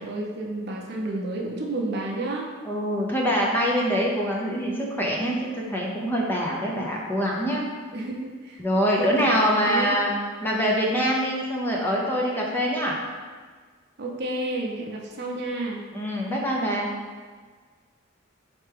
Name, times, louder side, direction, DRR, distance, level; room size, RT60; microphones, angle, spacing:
voice 1, 0.0-2.5 7.9-8.6 9.0-10.0 14.0-15.9, right 2 dB, 60° right, -1 dB, 0.6 m, -31 dB
voice 2, 2.6-7.6 8.6-10.1 10.4-13.0 15.9-16.9, equal, 10° left, -3 dB, 0.5 m, -24 dB
4.3 x 3.3 x 3.3 m, 1.5 s
head